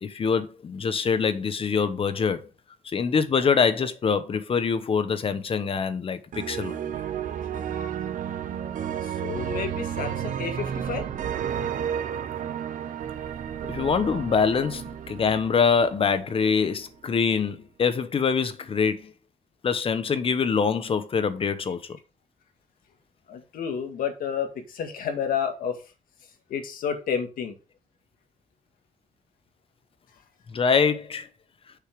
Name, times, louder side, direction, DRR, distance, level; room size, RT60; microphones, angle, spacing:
voice 1, 0.0-2.4 2.8-6.8 13.7-19.1 19.6-21.8 30.5-31.3, left 5 dB, 40° left, 1.0 m, -24 dB
sound 1, 6.3-16.4, right 9 dB, 70° right, 0.8 m, -32 dB
voice 2, 8.8-11.1 23.3-25.7 26.5-27.5, left 7 dB, 85° left, 1.9 m, -30 dB
6.9 x 5.5 x 4.8 m
cardioid pair, 125°, 14 cm